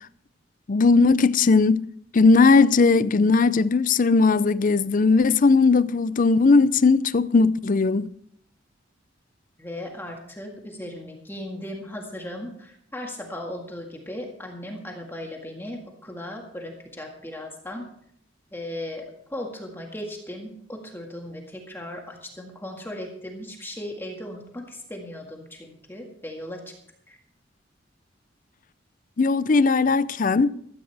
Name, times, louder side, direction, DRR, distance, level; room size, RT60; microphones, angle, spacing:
voice 1, 0.7-1.9 2.1-8.1 29.2-30.5, left 4 dB, 45° left, 0.5 m, -18 dB
voice 2, 9.6-17.9 18.5-26.8 27.1-27.2, left 1 dB, 10° left, 1.8 m, -37 dB
15.5 x 13.5 x 3.4 m
head